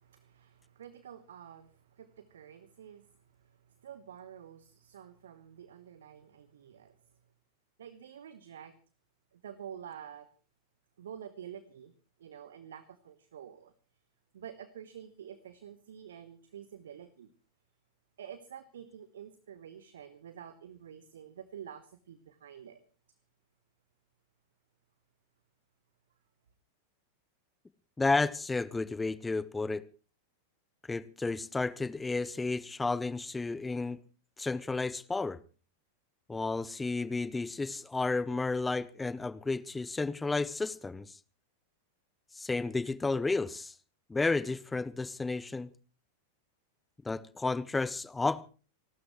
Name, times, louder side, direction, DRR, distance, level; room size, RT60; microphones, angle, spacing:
voice 1, 0.0-7.2 7.8-8.7 9.3-10.3 11.0-11.9 12.2-13.7 14.3-17.3 18.2-22.8, right 9 dB, 65° right, 13 dB, 1.2 m, -49 dB
voice 2, 28.0-29.8 30.9-34.0 34.4-35.4 36.3-41.2 42.3-43.7 44.1-45.7 47.0-48.4, left 3 dB, 10° left, 17 dB, 0.7 m, -32 dB
29.5 x 12.5 x 3.1 m, 0.37 s
figure-of-eight pair, 90°, 0 cm